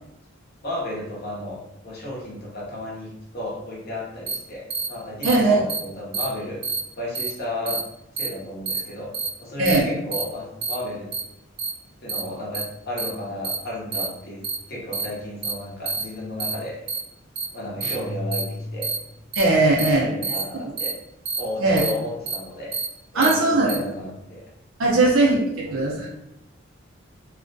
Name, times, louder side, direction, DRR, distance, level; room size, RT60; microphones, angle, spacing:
voice 1, 0.6-1.6 1.8-6.6 6.9-7.8 8.1-9.1 9.4-11.1 12.0-14.4 14.7-16.8 17.5-18.9 19.8-20.9 21.4-22.7 23.1-24.4 24.9-25.1 25.6-25.8, left 1 dB, 50° left, -3 dB, 0.7 m, -33 dB
sound 1, 4.3-4.4 4.7-4.9 5.2-5.3 5.7-5.8 6.1-6.2 6.6-6.8 7.1-7.3 7.7-7.8 8.2-8.3 8.7-8.8 9.1-9.3 9.7-9.8 10.1-10.2 10.6-10.7 11.1-11.2 11.6-11.7 12.1-12.2 12.5-12.6 13.0-13.1 13.4-13.6 13.9-14.1 14.4-14.6 14.9-15.0 15.4-15.5 15.9-16.0 16.4-16.5 16.9-17.0 17.4-17.5 17.8-17.9 18.3-18.4 18.8-19.0 19.3-19.4 19.8-19.9 20.2-20.4 20.8-20.9 21.3-21.4 21.8-21.9 22.3-22.4 22.7-22.9 23.2-23.3 23.7-23.8, right 4 dB, 30° right, 0.4 m, -27 dB
voice 2, 5.2-5.7 9.6-9.8 19.4-20.1 20.5-20.7 21.6-21.8 23.1-23.7 24.8-26.1, right 2 dB, 85° right, -3 dB, 0.5 m, -19 dB
sound 2, 17.8-19.2, left 1 dB, 15° left, 0.6 m, -34 dB
2.4 x 2.1 x 2.5 m, 0.87 s
head